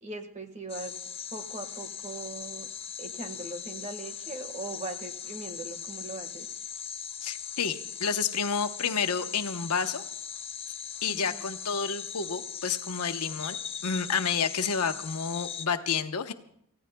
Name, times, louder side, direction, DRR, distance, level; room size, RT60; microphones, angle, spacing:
voice 1, 0.0-0.9 1.3-2.7 3.0-6.5 11.1-11.4, right 2 dB, 30° right, 7 dB, 1.6 m, -40 dB
sound 1, 0.7-15.7, left 8 dB, 25° left, 0.5 m, -39 dB
voice 2, 7.2-10.0 11.0-13.6 13.8-16.3, left 6 dB, 85° left, 8 dB, 0.9 m, -30 dB
29.5 x 15.5 x 2.3 m, 0.71 s
head